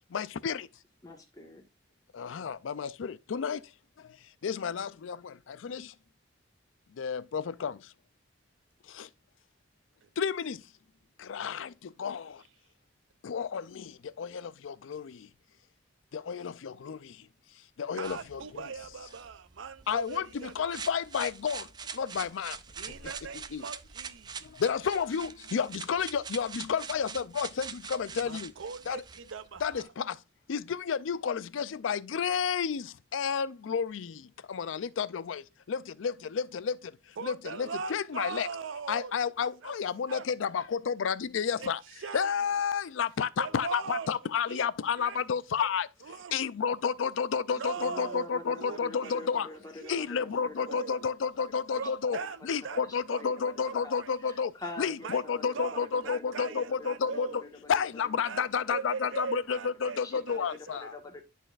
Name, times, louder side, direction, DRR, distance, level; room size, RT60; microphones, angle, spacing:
voice 1, 0.1-0.7 2.1-3.7 4.0-4.2 4.4-5.9 6.9-7.9 8.9-9.1 10.2-10.7 11.2-12.4 13.2-15.3 16.1-17.3 17.8-18.6 19.9-22.6 22.9-23.0 23.5-23.6 24.4-28.5 28.9-29.0 29.6-30.2 30.5-38.5 38.9-41.8 42.1-45.9 46.3-49.5 49.9-52.2 52.4-57.4 57.7-61.0, left 6 dB, 80° left, 0.4 m, -31 dB
voice 2, 1.0-1.6 47.8-50.8 51.5-51.6 51.8-51.9 52.2-52.3 52.8-53.5 53.8-57.8 60.0-61.2, left 2 dB, 20° left, 1.4 m, -46 dB
voice 3, 17.9-20.9 22.8-24.5 28.2-29.9 37.2-39.1 39.6-39.7 40.1-40.2 41.6-41.7 42.0-42.3 43.4-44.1 44.5-44.7 45.0-45.2 45.6-45.7 46.0-46.4 47.6-48.3 48.6-49.2 49.8-50.1 50.7-51.1 51.8-52.8 53.1-53.2 53.6-54.1 55.0-55.2 55.5-57.4 58.2-60.0 60.3-60.9, right 5 dB, 80° right, 0.6 m, -40 dB
sound 1, 18.0-29.8, right 6 dB, 20° right, 0.4 m, -44 dB
11.0 x 4.1 x 2.5 m
head